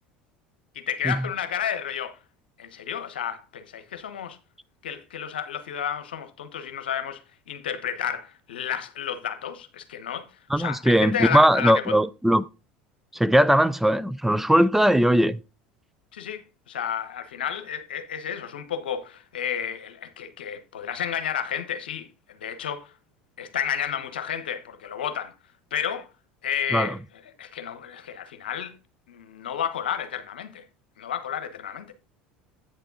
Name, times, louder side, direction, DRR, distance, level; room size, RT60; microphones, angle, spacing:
voice 1, 0.7-2.2 2.6-4.4 4.8-7.2 7.5-10.3 10.6-12.0 16.1-22.9 23.4-25.3 25.7-26.1 26.4-27.0 27.4-28.7 29.1-30.6 31.0-31.9, left 9 dB, 80° left, 1.0 m, -31 dB
voice 2, 10.5-12.4 13.1-15.4 26.7-27.0, equal, 5° right, 0.4 m, -20 dB
8.7 x 6.8 x 3.7 m
hypercardioid pair, 75°, 5 cm